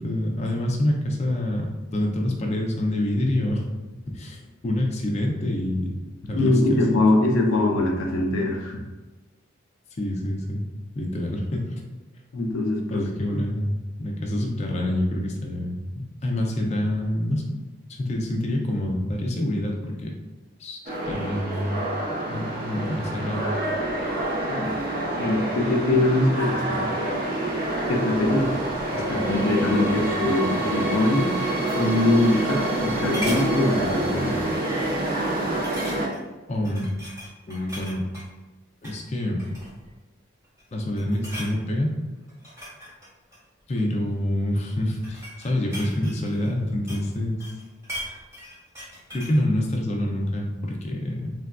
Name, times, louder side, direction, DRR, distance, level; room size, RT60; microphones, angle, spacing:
voice 1, 0.0-3.6 4.1-5.9 6.2-7.0 10.0-10.6 11.0-11.7 12.9-17.5 18.0-20.1 20.6-20.8 21.1-21.9 22.3-23.6 36.5-36.9 37.5-38.1 38.8-39.4 40.7-41.9 43.7-47.4 49.1-51.3, left 1 dB, 35° left, 0 dB, 0.4 m, -26 dB
voice 2, 6.3-8.8 12.3-13.0 13.3-13.4 24.5-24.8 25.1-26.9 27.9-28.6 28.9-31.3 31.8-34.4, left 2 dB, 90° left, 1 dB, 0.5 m, -23 dB
sound 1, 20.9-36.1, right 1 dB, 45° right, 0.5 m, -27 dB
sound 2, 32.4-32.8 33.1-33.5 34.1-34.3 34.6-34.7 35.6-36.3 36.6-38.3 38.7-39.0 39.4-39.9 40.4-40.7 41.0-41.5 42.3-43.9 44.7-47.1 47.4-49.4 49.7-49.8, equal, 15° right, 1.0 m, -38 dB
3.3 x 2.4 x 2.2 m, 1.2 s
head